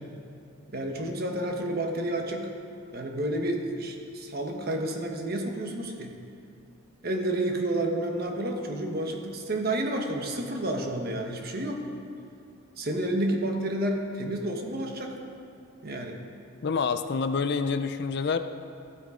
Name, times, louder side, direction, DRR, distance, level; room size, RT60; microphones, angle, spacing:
voice 1, 0.7-2.5 2.9-6.1 7.0-11.8 12.8-15.2 15.8-16.2, right 1 dB, 45° right, 2 dB, 1.2 m, -30 dB
voice 2, 16.6-18.4, left 5 dB, 50° left, 10 dB, 0.4 m, -27 dB
14.5 x 8.3 x 5.0 m, 2.5 s
head